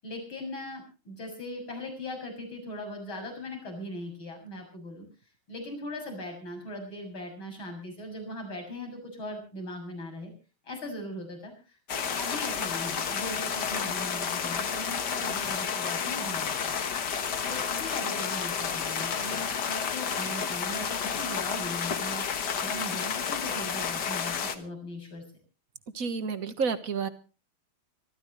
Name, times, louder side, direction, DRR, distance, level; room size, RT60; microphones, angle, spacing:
voice 1, 0.0-5.1 5.5-10.3 10.6-16.8 17.4-22.2 22.6-25.2, left 1 dB, 75° left, 3 dB, 7.8 m, -39 dB
sound 1, 11.9-24.5, left 7 dB, 55° left, 1.9 m, -31 dB
voice 2, 25.9-27.1, right 5 dB, 45° right, 11 dB, 1.6 m, -30 dB
25.5 x 14.0 x 3.2 m, 0.34 s
omnidirectional pair, 2.2 m